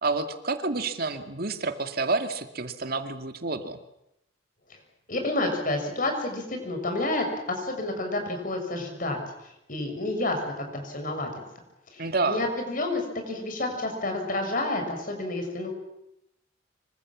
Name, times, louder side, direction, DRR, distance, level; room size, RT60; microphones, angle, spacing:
voice 1, 0.0-3.8 12.0-12.4, right 3 dB, 55° right, 7 dB, 2.2 m, -29 dB
voice 2, 5.1-11.3 11.9-15.7, left 2 dB, 50° left, 4 dB, 6.7 m, -30 dB
26.0 x 24.5 x 7.5 m, 0.82 s
head